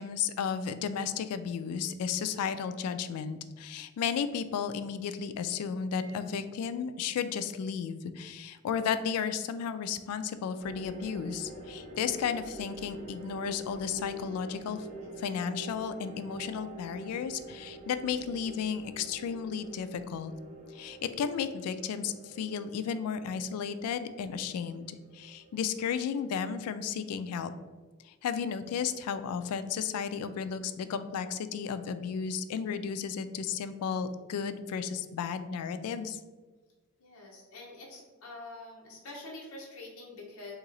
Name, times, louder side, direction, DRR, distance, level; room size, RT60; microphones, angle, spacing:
voice 1, 0.0-14.9 15.2-20.3 20.7-24.9 25.1-27.5 28.0-36.2, left 7 dB, 85° left, 14 dB, 0.3 m, -33 dB
sound 1, 10.6-27.1, equal, 35° right, 0.9 m, -46 dB
voice 2, 37.0-40.5, left 2 dB, 70° left, -2 dB, 0.8 m, -46 dB
3.0 x 2.8 x 3.8 m, 1.3 s
head